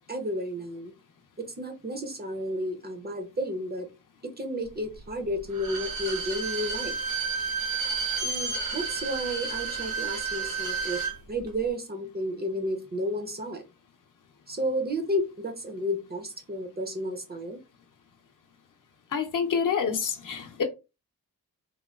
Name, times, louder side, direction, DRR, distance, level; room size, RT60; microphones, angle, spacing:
voice 1, 0.1-0.9 1.4-3.9 4.2-6.9 8.2-11.0 11.3-13.6 14.5-17.6, equal, 25° right, 0.5 m, -32 dB
Bowed string instrument, 5.5-11.1 11.5-11.6, right 5 dB, 75° right, 1.1 m, -31 dB
voice 2, 19.1-20.6, left 6 dB, 60° left, 0.6 m, -27 dB
3.4 x 2.1 x 2.3 m
wide cardioid pair, 115°, 36 cm